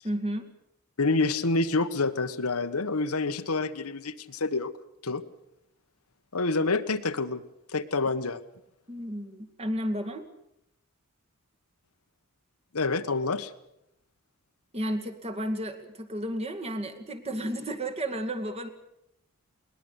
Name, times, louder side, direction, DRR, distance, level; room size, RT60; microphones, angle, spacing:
voice 1, 0.0-0.5 8.9-10.3 14.7-18.7, right 1 dB, 25° right, 5 dB, 2.2 m, -32 dB
voice 2, 1.0-4.7 5.0-5.2 6.3-7.4 7.7-8.4 12.7-13.5, left 3 dB, 85° left, 10 dB, 1.3 m, -27 dB
21.5 x 20.0 x 8.1 m, 0.80 s
head